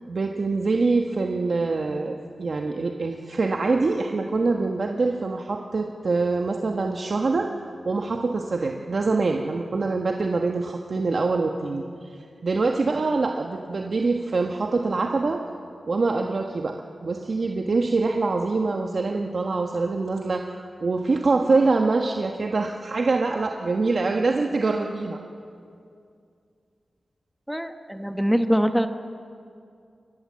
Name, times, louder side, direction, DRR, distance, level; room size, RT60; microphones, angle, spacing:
voice 1, 0.1-7.5 7.8-15.4 15.9-16.7 17.0-25.2, right 3 dB, 60° right, 2 dB, 1.3 m, -24 dB
voice 2, 27.5-28.9, equal, ahead, 7 dB, 1.1 m, -23 dB
23.5 x 20.0 x 7.6 m, 2.4 s
wide cardioid pair, 90°, 0 cm